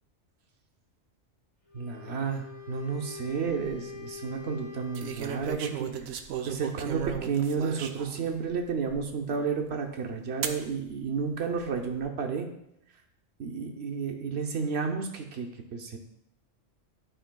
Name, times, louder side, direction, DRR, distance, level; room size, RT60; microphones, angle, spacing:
Wind instrument woodwind instrument, 1.6-6.0, left 6 dB, 35° left, 1.8 m, -44 dB
voice 1, 1.7-5.9 6.5-12.5 13.4-16.0, right 5 dB, 60° right, 2 dB, 1.0 m, -31 dB
sound 1, 3.3-3.7 4.9-8.3 8.9-9.0 10.4-10.6 11.5-12.0, right 8 dB, 90° right, 1.0 m, -36 dB
11.5 x 4.9 x 2.2 m, 0.81 s
omnidirectional pair, 1.3 m